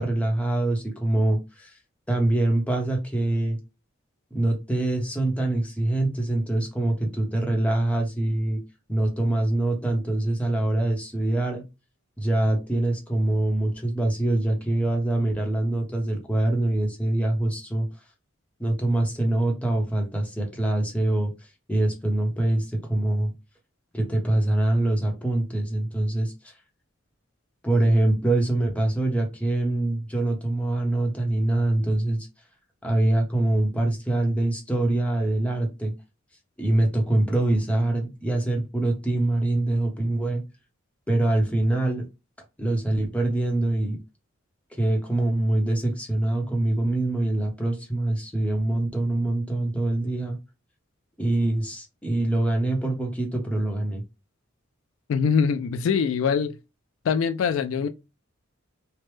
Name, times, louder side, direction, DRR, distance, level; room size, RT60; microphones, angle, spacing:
voice 1, 0.0-1.8 2.1-3.6 4.3-8.6 8.9-11.6 12.2-17.9 18.6-21.3 21.7-23.3 23.9-26.5 27.6-32.3 32.8-35.9 36.6-40.4 41.1-42.1 42.6-44.0 44.8-50.4 51.2-54.0, right 1 dB, 5° left, 0.8 m, -24 dB
voice 2, 55.1-56.5 57.0-57.9, left 6 dB, 70° left, 0.3 m, -23 dB
3.2 x 2.0 x 3.0 m
head